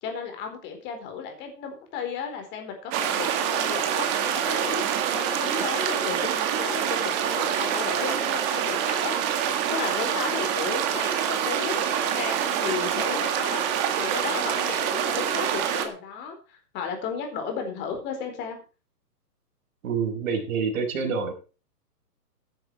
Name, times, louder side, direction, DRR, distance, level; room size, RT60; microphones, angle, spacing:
voice 1, 0.0-4.8 5.1-18.6, left 6 dB, 20° left, 4 dB, 4.3 m, -34 dB
sound 1, 2.9-15.9, right 9 dB, 20° right, 1.7 m, -26 dB
voice 2, 19.8-21.3, right 5 dB, 55° right, 2 dB, 5.8 m, -27 dB
14.0 x 10.5 x 4.7 m, 0.35 s
hypercardioid pair, 150°, 48 cm